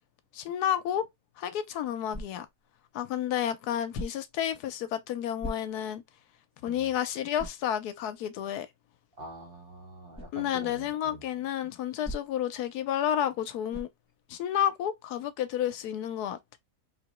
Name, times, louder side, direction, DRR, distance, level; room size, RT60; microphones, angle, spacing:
voice 1, 0.3-1.1 1.4-2.5 2.9-6.0 6.6-8.7 10.3-13.9 14.3-16.6, left 10 dB, 80° left, 1.1 m, -31 dB
sound 1, 2.1-2.6 3.9-4.4 5.4-6.0 6.5-6.6 7.4-7.7 10.1-10.4 12.0-12.5 13.7-14.1, equal, 5° right, 0.8 m, -40 dB
voice 2, 9.2-11.2, right 1 dB, 35° right, 1.6 m, -45 dB
3.6 x 2.9 x 3.0 m
omnidirectional pair, 1.7 m